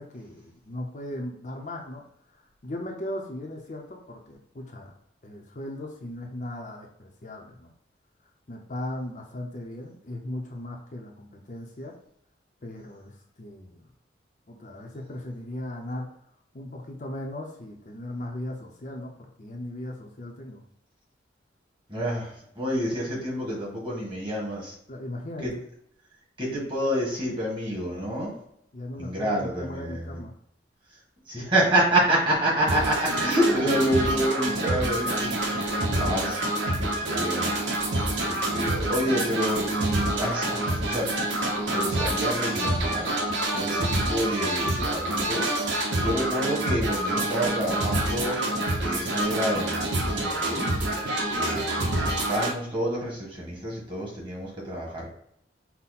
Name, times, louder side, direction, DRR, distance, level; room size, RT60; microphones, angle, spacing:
voice 1, 0.0-2.0 2.3-5.0 5.2-7.7 8.5-11.9 12.6-13.9 14.5-16.1 16.5-20.6 24.9-25.5 28.7-30.3 35.5-36.1, left 1 dB, 40° left, 1 dB, 0.6 m, -38 dB
voice 2, 21.9-24.8 25.4-25.5 26.4-28.4 29.0-30.2 31.3-36.4 36.8-37.5 38.2-40.6 40.8-41.1 41.5-43.1 43.5-48.4 48.8-55.1, right 1 dB, 25° right, -4 dB, 1.6 m, -28 dB
sound 1, 32.7-52.5, right 1 dB, 75° right, 0.8 m, -27 dB
5.7 x 2.1 x 4.1 m, 0.71 s
head